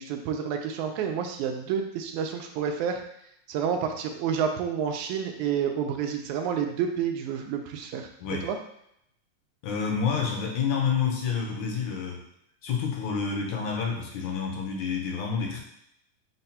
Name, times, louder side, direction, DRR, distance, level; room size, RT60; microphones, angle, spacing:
voice 1, 0.0-3.0 3.5-8.1 8.4-8.6, right 7 dB, 85° right, 4 dB, 2.0 m, -29 dB
voice 2, 9.6-12.2 12.6-15.6, left 6 dB, 75° left, 0 dB, 2.1 m, -28 dB
5.7 x 2.2 x 4.2 m, 0.75 s
omnidirectional pair, 3.4 m